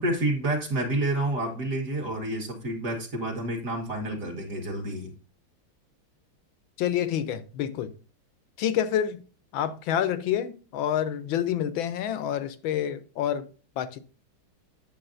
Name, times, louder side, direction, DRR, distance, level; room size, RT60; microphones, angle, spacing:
voice 1, 0.0-5.1, right 1 dB, 45° right, 1.7 m, -29 dB
voice 2, 6.8-7.9 8.6-9.2 9.5-13.5 13.8-14.0, left 10 dB, 80° left, 1.4 m, -28 dB
8.7 x 6.8 x 2.6 m
omnidirectional pair, 2.3 m